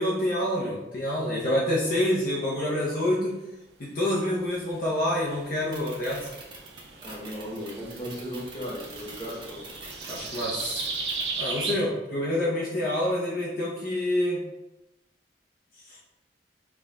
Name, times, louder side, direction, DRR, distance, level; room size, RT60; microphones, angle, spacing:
voice 1, 0.0-3.4 3.8-6.3 10.1-10.8 11.4-14.4 15.9-16.0, left 1 dB, 50° left, -6 dB, 0.7 m, -27 dB
sound 1, 4.9-11.7, right 4 dB, 70° right, 0.7 m, -36 dB
sound 2, 5.7-11.2, right 4 dB, 25° right, 0.7 m, -43 dB
voice 2, 7.0-9.6, equal, 25° left, -5 dB, 1.1 m, -36 dB
4.6 x 2.4 x 3.4 m, 0.95 s
head